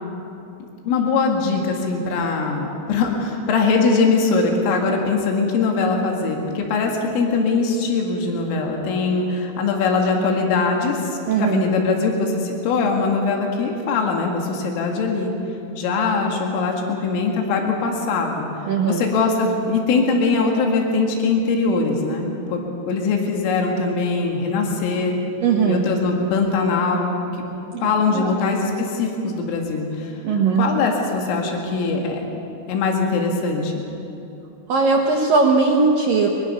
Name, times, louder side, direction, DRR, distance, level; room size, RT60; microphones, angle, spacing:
voice 1, 0.9-15.3 15.8-18.5 18.8-25.1 25.6-27.1 27.8-30.1 30.6-33.9, left 4 dB, 85° left, 1 dB, 4.5 m, -21 dB
voice 2, 11.3-11.6 18.7-19.0 25.4-25.8 27.7-27.8 28.1-28.3 30.2-30.7 34.7-36.3, right 4 dB, 70° right, 0 dB, 2.1 m, -18 dB
22.5 x 21.5 x 5.6 m, 2.8 s
omnidirectional pair, 5.7 m